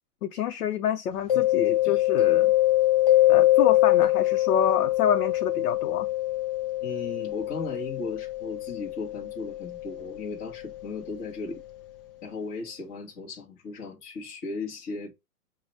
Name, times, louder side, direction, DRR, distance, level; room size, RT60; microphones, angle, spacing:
voice 1, 0.2-2.5 3.3-6.1, left 9 dB, 70° left, 0.7 m, -27 dB
Mallet percussion, 1.3-10.9, left 16 dB, 40° left, 0.4 m, -24 dB
voice 2, 6.8-11.6 12.2-15.1, left 3 dB, 20° left, 1.0 m, -36 dB
4.8 x 2.2 x 4.0 m
hypercardioid pair, 140°, 46 cm